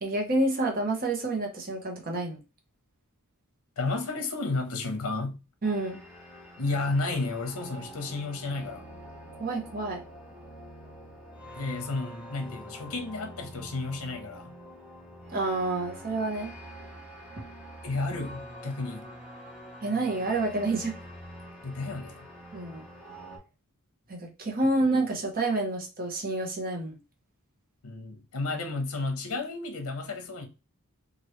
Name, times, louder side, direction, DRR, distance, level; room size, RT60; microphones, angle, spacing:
voice 1, 0.0-2.4 5.6-6.0 9.4-10.0 15.3-16.5 19.8-20.9 22.5-22.8 24.1-27.0, right 2 dB, 40° right, 0.9 m, -28 dB
voice 2, 3.8-5.4 6.6-8.9 11.5-14.6 17.8-19.1 21.6-22.3 27.8-30.5, left 3 dB, 65° left, 0.7 m, -32 dB
sound 1, 5.6-23.4, equal, 5° right, 0.9 m, -46 dB
3.2 x 2.5 x 3.0 m
head